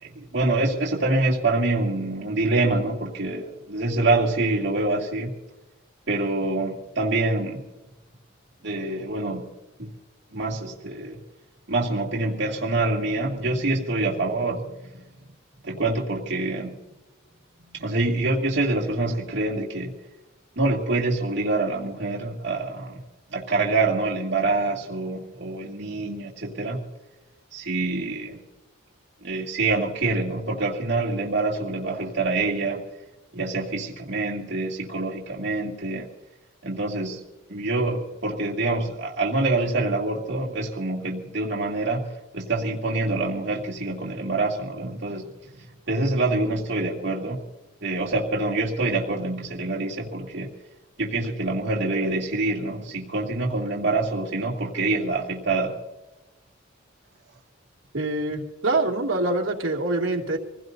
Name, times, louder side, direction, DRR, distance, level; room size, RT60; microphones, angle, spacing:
voice 1, 0.0-5.3 6.1-7.6 8.6-9.4 9.8-9.9 10.3-11.2 11.7-14.6 14.9-15.0 15.6-16.7 17.7-20.0 20.6-23.0 23.3-26.8 27.5-28.4 29.2-32.8 33.3-36.1 36.6-37.2 37.5-45.3 45.9-47.4 47.8-50.5 51.0-55.8, right 2 dB, 60° right, 2.2 m, -26 dB
voice 2, 57.9-60.4, right 2 dB, 80° right, 2.6 m, -25 dB
26.5 x 16.5 x 2.7 m
head